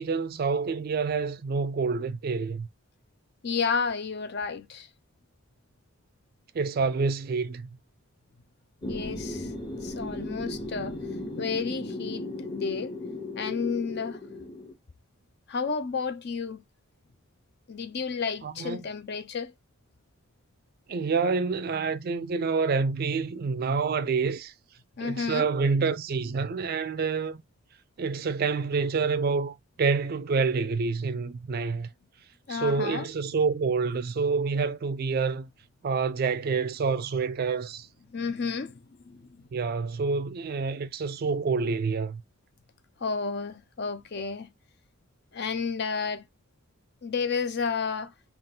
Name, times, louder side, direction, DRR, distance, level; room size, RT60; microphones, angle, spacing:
voice 1, 0.0-2.7 6.5-7.8 18.4-18.8 20.9-24.5 25.0-27.4 28.0-31.9 32.5-35.5 35.8-37.9 39.5-42.2, right 4 dB, 45° right, 0.3 m, -27 dB
voice 2, 3.4-4.9 8.9-9.5 9.8-11.0 11.4-12.9 13.4-14.2 15.5-16.6 17.7-19.5 25.0-25.5 32.5-33.1 38.1-39.4 43.0-44.5 45.3-46.2 47.0-48.1, left 5 dB, 50° left, 0.5 m, -31 dB
sound 1, 8.8-14.7, left 2 dB, 25° left, 1.0 m, -36 dB
3.7 x 2.4 x 3.7 m
head